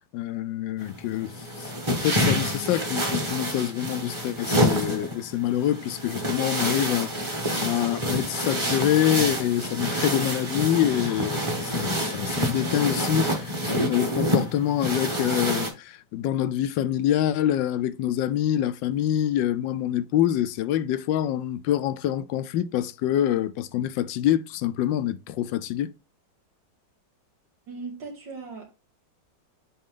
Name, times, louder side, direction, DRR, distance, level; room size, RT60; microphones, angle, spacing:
voice 1, 0.1-1.3 1.6-25.9, left 11 dB, 85° left, 1.3 m, -26 dB
sound 1, 0.8-15.7, equal, 20° right, 1.1 m, -28 dB
voice 2, 27.7-28.8, right 4 dB, 80° right, 2.9 m, -38 dB
8.4 x 3.1 x 3.7 m
omnidirectional pair, 2.0 m